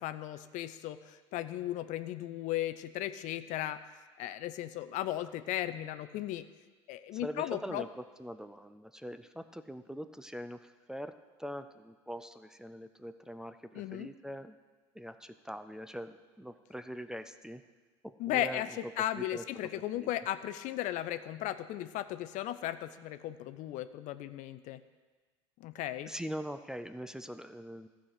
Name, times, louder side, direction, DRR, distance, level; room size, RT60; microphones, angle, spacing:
voice 1, 0.0-3.8 4.2-6.4 6.9-7.8 13.7-14.1 18.2-18.7 19.0-24.8 25.6-26.1, left 13 dB, 50° left, 12 dB, 0.5 m, -36 dB
voice 2, 7.1-14.6 14.9-17.6 18.0-18.8 19.1-20.1 26.1-27.9, equal, 5° right, 10 dB, 0.5 m, -43 dB
14.0 x 4.9 x 5.8 m, 1.4 s
hypercardioid pair, 75°, 16 cm